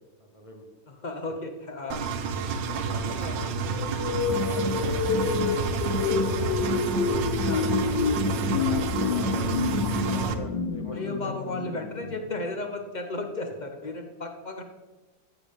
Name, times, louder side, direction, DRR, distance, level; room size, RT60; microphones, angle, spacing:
voice 1, 0.2-0.7 1.2-1.3 2.6-6.8 8.5-11.3, left 1 dB, 20° left, 2 dB, 1.3 m, -42 dB
voice 2, 0.9-2.0 3.1-3.4 7.4-7.7 10.9-14.6, left 2 dB, 55° left, 4 dB, 0.5 m, -34 dB
Engine, 1.9-10.3, right 5 dB, 90° right, 1.4 m, -30 dB
sound 1, 3.7-12.6, left 6 dB, 80° left, 1.3 m, -29 dB
sound 2, 4.2-10.3, right 1 dB, 55° right, 1.0 m, -32 dB
14.0 x 7.0 x 3.5 m, 1.2 s
omnidirectional pair, 1.9 m